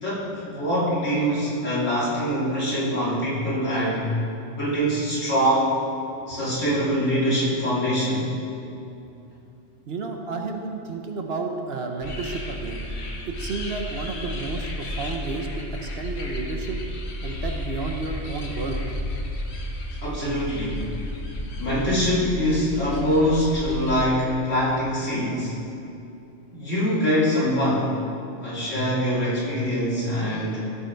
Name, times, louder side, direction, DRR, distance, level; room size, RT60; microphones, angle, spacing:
voice 1, 0.0-4.1 4.5-5.8 6.3-8.3 20.0-20.9 21.6-25.6 26.5-28.0 28.4-30.7, equal, 80° left, -8 dB, 3.2 m, -24 dB
voice 2, 9.9-12.8 13.3-16.8 17.2-18.8, right 4 dB, 60° right, 3 dB, 1.0 m, -31 dB
sound 1, 12.0-24.1, left 1 dB, 60° left, 1.4 m, -32 dB
15.0 x 5.7 x 4.6 m, 2.7 s
omnidirectional pair, 1.3 m